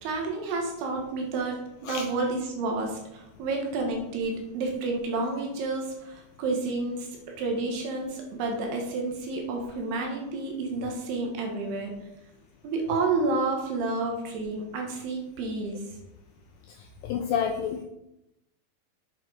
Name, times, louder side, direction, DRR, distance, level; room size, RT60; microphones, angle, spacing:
voice 1, 0.0-7.1 7.4-11.9 12.6-15.8, right 3 dB, 80° right, 1 dB, 3.4 m, -30 dB
voice 2, 17.0-17.8, left 7 dB, 85° left, 4 dB, 2.0 m, -28 dB
8.2 x 6.5 x 4.9 m, 0.86 s
omnidirectional pair, 4.7 m